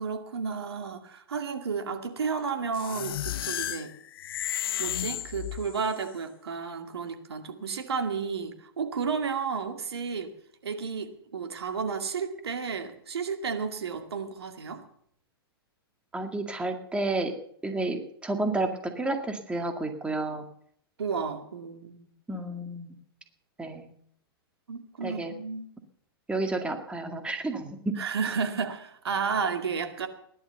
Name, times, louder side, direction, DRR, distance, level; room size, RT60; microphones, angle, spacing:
voice 1, 0.0-3.9 4.8-10.3 10.6-14.8 21.0-22.1 24.7-25.7 28.0-30.1, right 5 dB, 80° right, 6 dB, 2.3 m, -32 dB
sound 1, 2.7-6.0, left 12 dB, 65° left, 0.6 m, -33 dB
voice 2, 16.1-17.3 17.6-20.4 22.3-22.9 23.6-23.9 25.0-25.3 26.3-28.0, right 2 dB, 10° right, 5 dB, 2.0 m, -31 dB
18.0 x 11.5 x 6.9 m, 0.69 s
hypercardioid pair, 115°, 13 cm